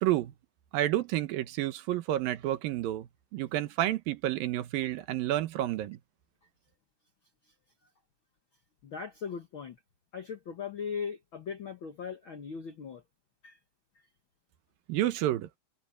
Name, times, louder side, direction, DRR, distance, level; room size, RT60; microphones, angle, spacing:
voice 1, 0.0-0.3 0.7-6.0 14.9-15.5, right 14 dB, 75° right, 2.7 m, -30 dB
voice 2, 8.8-9.8 10.1-13.0 13.4-13.6, left 6 dB, 80° left, 1.1 m, -39 dB
omnidirectional pair, 4.2 m